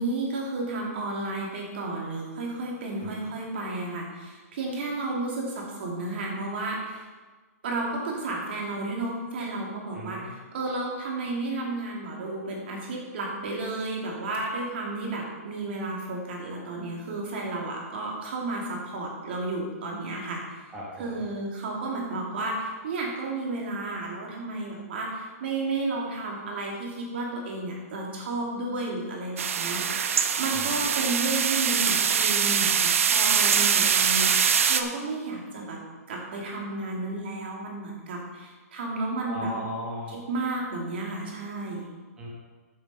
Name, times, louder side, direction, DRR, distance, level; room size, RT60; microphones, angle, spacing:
voice 1, 0.0-7.0 7.6-20.4 21.0-30.1 30.4-35.8 36.1-39.5 40.1-41.9, right 2 dB, 40° right, -1 dB, 2.7 m, -32 dB
voice 2, 9.9-10.3 20.7-21.2 30.5-30.7 39.2-40.2 42.2-42.3, equal, 10° right, -7 dB, 1.3 m, -37 dB
sound 1, 29.4-34.8, right 7 dB, 55° right, 0.8 m, -23 dB
9.9 x 7.5 x 5.7 m, 1.3 s
hypercardioid pair, 175°, 8 cm